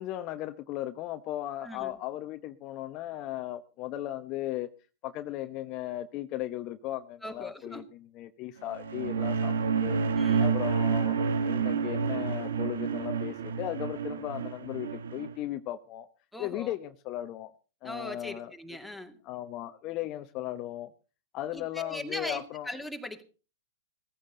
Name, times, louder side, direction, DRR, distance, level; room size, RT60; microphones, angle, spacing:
voice 1, 0.0-4.7 5.0-10.0 10.4-16.1 16.4-17.5 17.8-18.5 19.2-20.9 21.3-22.7, left 14 dB, 40° left, 9 dB, 1.0 m, -36 dB
voice 2, 1.6-2.0 7.2-7.8 10.2-10.5 16.3-16.7 17.8-19.2 21.5-23.2, left 1 dB, ahead, 3 dB, 2.3 m, -40 dB
sound 1, 8.7-15.3, right 6 dB, 70° right, 1.4 m, -29 dB
17.0 x 15.0 x 3.9 m, 0.35 s
hypercardioid pair, 105°, 0 cm